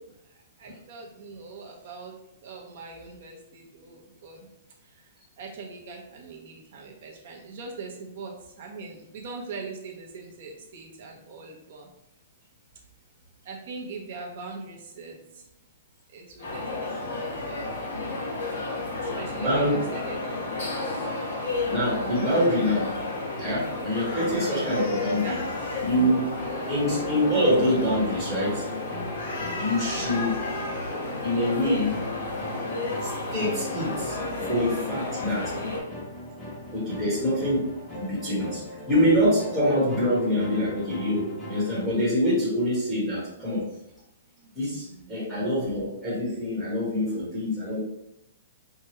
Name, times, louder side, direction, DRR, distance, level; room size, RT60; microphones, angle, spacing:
voice 1, 0.6-2.2 2.4-4.5 4.8-5.1 5.4-11.9 13.4-15.5 16.1-17.7 18.3-21.1 25.1-25.4 29.9-30.3 36.4-36.7 44.4-45.1, right 4 dB, 45° right, 0 dB, 0.8 m, -42 dB
sound 1, 16.4-35.8, left 2 dB, 55° left, 1.0 m, -32 dB
voice 2, 19.4-19.8 21.7-22.9 23.4-25.4 25.8-26.3 26.7-28.6 29.6-30.4 31.2-32.0 33.0-34.2 34.5-35.5 36.7-37.7 38.0-38.6 38.9-43.7 44.5-47.8, equal, 5° right, -10 dB, 1.2 m, -25 dB
sound 2, 25.9-41.8, equal, 10° left, 0.7 m, -39 dB
4.6 x 2.2 x 2.9 m, 0.83 s
hypercardioid pair, 175°, 0 cm